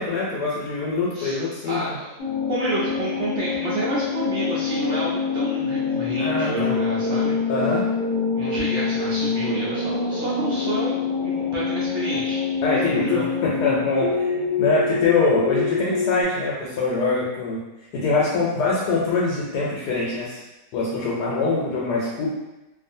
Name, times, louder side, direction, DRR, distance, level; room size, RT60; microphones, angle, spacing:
voice 1, 0.0-1.8 6.2-6.8 7.5-7.9 12.6-17.6 17.9-20.4 20.7-22.3, left 3 dB, 90° left, -5 dB, 1.2 m, -24 dB
voice 2, 1.1-2.1 2.4-7.3 8.3-10.9 11.2-13.3, right 2 dB, 80° right, -8 dB, 0.5 m, -30 dB
sound 1, 2.2-16.2, left 5 dB, 40° left, 0.5 m, -25 dB
2.6 x 2.4 x 2.6 m, 1.0 s
omnidirectional pair, 1.7 m